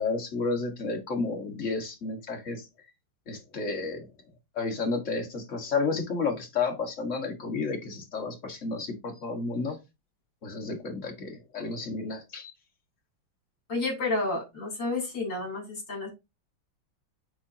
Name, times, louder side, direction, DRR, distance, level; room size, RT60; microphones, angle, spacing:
voice 1, 0.0-2.6 3.3-4.1 4.6-9.8 10.4-12.5, left 4 dB, 40° left, 3 dB, 1.8 m, -31 dB
voice 2, 13.7-16.1, left 2 dB, 70° left, 0 dB, 4.2 m, -30 dB
8.9 x 4.2 x 2.8 m, 0.24 s
omnidirectional pair, 2.1 m